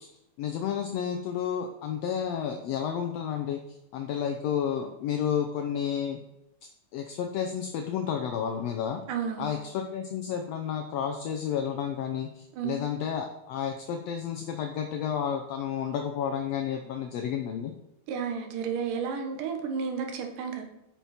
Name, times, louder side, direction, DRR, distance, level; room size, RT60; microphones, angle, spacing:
voice 1, 0.4-6.2 6.9-9.0 9.4-17.7, left 8 dB, 80° left, 4 dB, 1.5 m, -31 dB
voice 2, 9.1-9.5 12.5-12.8 18.1-20.6, right 6 dB, 85° right, 4 dB, 2.8 m, -32 dB
9.2 x 6.1 x 4.2 m, 0.88 s
omnidirectional pair, 3.7 m